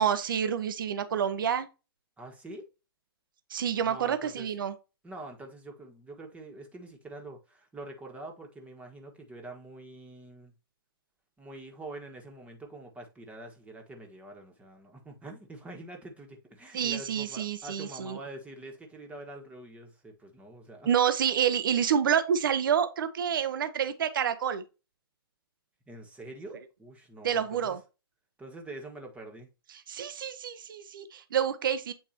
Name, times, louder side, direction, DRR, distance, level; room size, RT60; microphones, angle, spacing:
voice 1, 0.0-1.7 3.5-4.7 16.7-18.2 20.9-24.6 27.2-27.8 29.9-31.9, right 8 dB, 60° right, 1.0 m, -28 dB
voice 2, 2.2-2.7 3.8-4.5 5.0-10.5 11.4-20.9 25.9-27.8 28.4-29.5, right 2 dB, 10° right, 1.7 m, -45 dB
8.8 x 4.6 x 2.9 m
figure-of-eight pair, 115°, 13 cm